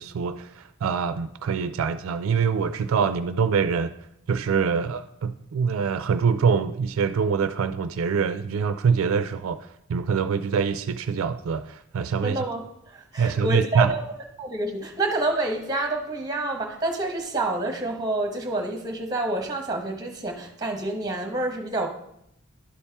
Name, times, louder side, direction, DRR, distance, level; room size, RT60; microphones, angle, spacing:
voice 1, 0.0-3.9 4.3-12.4 13.2-13.9, right 6 dB, 75° right, 11 dB, 0.3 m, -24 dB
voice 2, 12.2-14.0 14.4-21.9, right 2 dB, 20° right, 3 dB, 0.9 m, -28 dB
11.5 x 4.2 x 3.4 m, 0.78 s
head